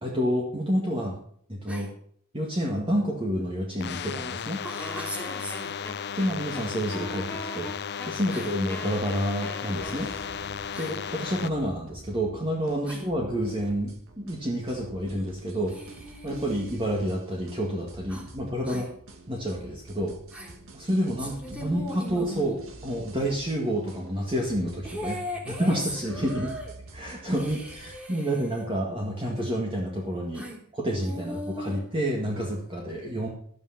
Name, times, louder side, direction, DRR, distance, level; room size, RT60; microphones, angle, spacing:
voice 1, 0.0-1.2 1.5-1.9 2.3-4.6 6.1-7.7 8.1-10.1 10.8-15.8 16.2-18.8 19.3-20.1 20.7-25.2 25.5-26.5 26.9-30.5 30.7-33.3, equal, 25° right, -2 dB, 2.0 m, -29 dB
sound 1, 3.8-11.5, left 7 dB, 50° left, 0.5 m, -35 dB
voice 2, 4.6-5.9 8.3-8.5 10.7-11.0 12.9-13.1 15.7-16.8 18.1-18.3 18.6-18.9 20.3-20.6 21.3-22.6 24.8-25.8 26.1-26.7 27.3-28.6 30.3-30.6 31.0-31.8, equal, 5° right, -2 dB, 3.2 m, -39 dB
Wind instrument woodwind instrument, 4.8-10.6, left 1 dB, 10° left, 1.2 m, -41 dB
sound 2, 9.7-28.0, right 1 dB, 65° right, 1.9 m, -48 dB
12.5 x 8.9 x 5.9 m, 0.63 s
head